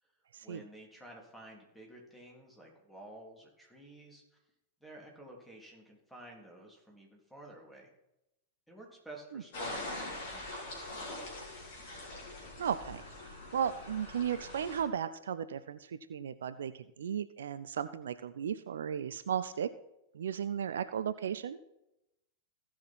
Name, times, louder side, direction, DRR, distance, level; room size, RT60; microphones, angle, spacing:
voice 1, 0.4-4.2 4.8-7.9 8.7-10.5 10.9-11.7, right 1 dB, 5° left, 0 dB, 3.0 m, -52 dB
sound 1, 9.5-14.8, left 2 dB, 50° left, 3.6 m, -43 dB
voice 2, 12.6-13.0 13.5-19.7 20.1-21.6, right 8 dB, 65° right, 13 dB, 0.4 m, -35 dB
15.5 x 6.0 x 4.4 m, 0.89 s
figure-of-eight pair, 90°, 0 cm